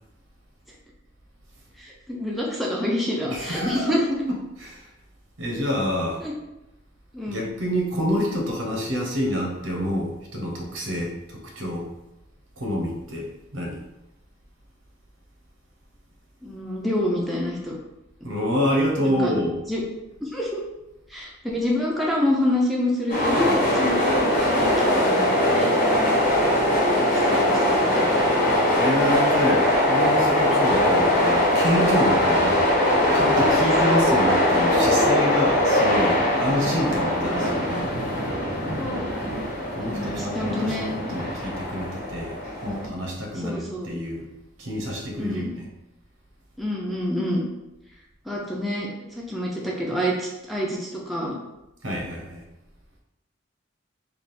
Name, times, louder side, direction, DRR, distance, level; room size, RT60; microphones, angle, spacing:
voice 1, 1.8-4.0 6.2-6.3 7.1-7.5 16.4-17.7 19.0-19.3 19.7-19.8 20.2-20.6 21.1-25.8 26.5-28.1 30.7-30.9 33.6-34.7 38.8-39.2 39.8-41.1 42.6-42.9 43.3-43.9 45.2-45.5 46.6-47.4 48.3-48.9 49.2-51.4, left 1 dB, ahead, -4 dB, 0.5 m, -28 dB
voice 2, 3.3-4.0 4.3-4.9 5.4-6.2 7.3-11.9 12.6-13.8 18.2-19.6 28.8-32.6 33.1-37.9 39.7-42.4 42.6-44.3 44.6-45.7 51.8-52.4, equal, 80° right, 0 dB, 0.9 m, -27 dB
sound 1, 23.1-42.9, left 1 dB, 40° left, 1.1 m, -21 dB
3.3 x 2.4 x 4.1 m, 0.93 s
head